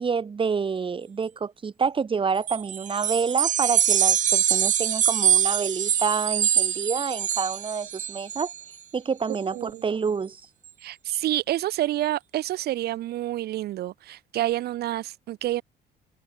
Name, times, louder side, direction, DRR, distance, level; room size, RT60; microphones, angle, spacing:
voice 1, 0.0-8.5 8.9-10.4 11.1-11.2, right 5 dB, 30° right, 3.8 m, -28 dB
sound 1, 2.4-8.6, right 9 dB, 50° right, 1.9 m, -24 dB
voice 2, 9.5-9.8 10.8-15.6, right 14 dB, 70° right, 1.9 m, -28 dB
cardioid pair, 110°, 17 cm